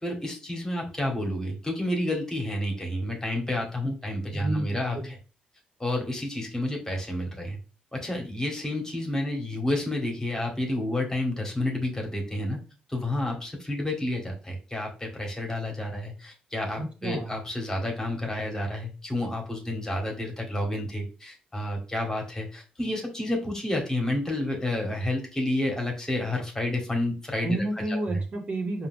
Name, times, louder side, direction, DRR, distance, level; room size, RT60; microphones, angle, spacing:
voice 1, 0.0-5.2 5.8-7.6 7.9-12.6 12.9-27.6 27.9-28.2, left 1 dB, 15° left, 1 dB, 1.8 m, -30 dB
voice 2, 4.3-5.1 16.8-17.4 27.4-28.9, right 1 dB, 40° right, 0 dB, 1.8 m, -30 dB
4.8 x 2.7 x 3.7 m, 0.34 s
supercardioid pair, 55°, 3 cm